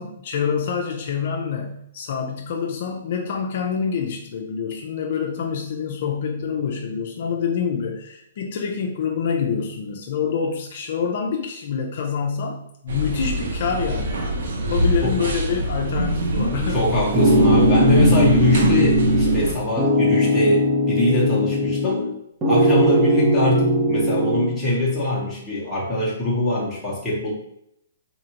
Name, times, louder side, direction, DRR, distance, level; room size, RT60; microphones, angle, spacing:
voice 1, 0.0-14.3 14.7-16.8, left 6 dB, 55° left, 1 dB, 0.5 m, -26 dB
sound 1, 12.9-19.5, right 1 dB, 65° right, 0.7 m, -25 dB
voice 2, 16.7-22.1 22.5-27.3, left 1 dB, 10° left, -7 dB, 1.1 m, -22 dB
sound 2, 17.1-19.5 19.8-22.1 22.4-24.5, equal, 20° right, 0.8 m, -19 dB
4.1 x 2.6 x 2.9 m, 0.75 s
hypercardioid pair, 155°, 0 cm